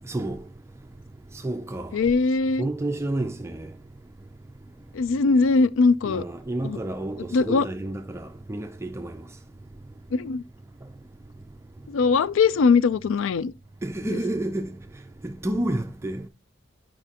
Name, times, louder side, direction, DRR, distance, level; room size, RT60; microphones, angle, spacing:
voice 1, 0.1-0.4 1.4-1.9 2.6-3.7 6.0-9.2 13.8-14.8 15.2-16.3, right 1 dB, 15° right, 0.4 m, -30 dB
voice 2, 1.9-2.7 4.9-6.2 6.6-6.8 7.3-7.7 10.1-10.4 11.9-13.5, left 4 dB, 80° left, 0.4 m, -21 dB
9.0 x 5.3 x 2.8 m
head